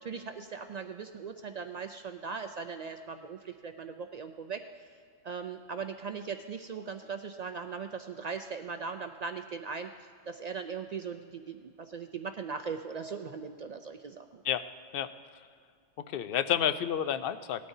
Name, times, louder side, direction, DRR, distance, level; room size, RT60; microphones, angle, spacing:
voice 1, 0.0-4.6 5.2-14.4, right 5 dB, 80° right, 7 dB, 0.3 m, -39 dB
voice 2, 16.0-17.7, left 9 dB, 60° left, 12 dB, 0.6 m, -30 dB
19.0 x 12.5 x 2.7 m, 2.2 s
omnidirectional pair, 1.3 m